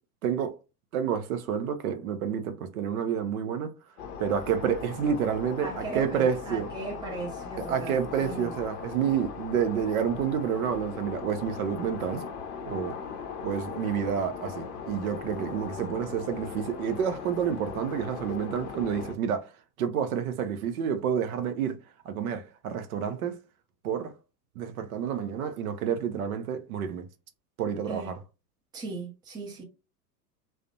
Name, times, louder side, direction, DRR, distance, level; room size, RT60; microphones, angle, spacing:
voice 1, 0.2-0.6 0.9-3.7 4.2-6.7 7.6-12.2 12.7-13.0 13.4-19.5 19.8-21.8 22.1-23.4 23.8-24.1 24.6-27.1 27.6-28.2, right 8 dB, 60° right, 0.6 m, -29 dB
sound 1, 4.0-19.1, left 6 dB, 45° left, 0.6 m, -39 dB
voice 2, 5.6-8.6 27.9-28.1 28.7-29.6, right 3 dB, 10° right, 0.5 m, -38 dB
2.4 x 2.1 x 2.5 m
figure-of-eight pair, 85°, 49 cm